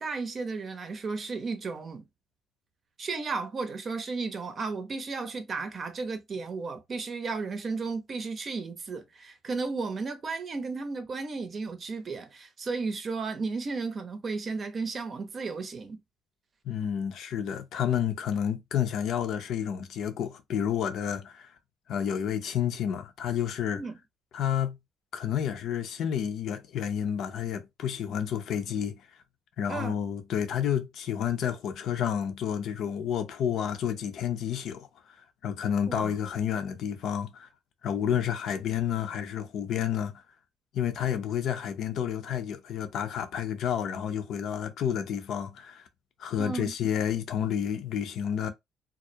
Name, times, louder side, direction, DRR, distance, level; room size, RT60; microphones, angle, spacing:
voice 1, 0.0-2.0 3.0-16.0 23.7-24.0 29.7-30.0 35.9-36.2 46.4-46.7, right 4 dB, 40° right, 0.6 m, -34 dB
voice 2, 16.6-21.5 21.9-23.8 24.3-24.8 25.1-29.0 29.6-34.9 35.4-37.5 37.8-40.2 40.7-45.8 46.2-48.5, left 9 dB, 65° left, 0.5 m, -30 dB
2.3 x 2.0 x 2.7 m
supercardioid pair, 80°, 0 cm